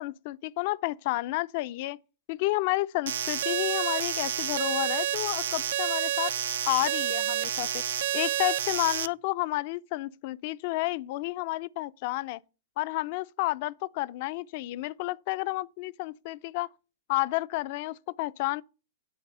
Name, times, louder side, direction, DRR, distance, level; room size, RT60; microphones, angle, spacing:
voice 1, 0.0-2.0 2.3-6.3 6.7-7.8 8.1-12.4 12.8-16.7 17.1-18.6, left 19 dB, 50° left, 0.4 m, -31 dB
sound 1, 3.1-9.1, right 11 dB, 70° right, 0.4 m, -29 dB
9.1 x 4.1 x 6.7 m
hypercardioid pair, 115°, 0 cm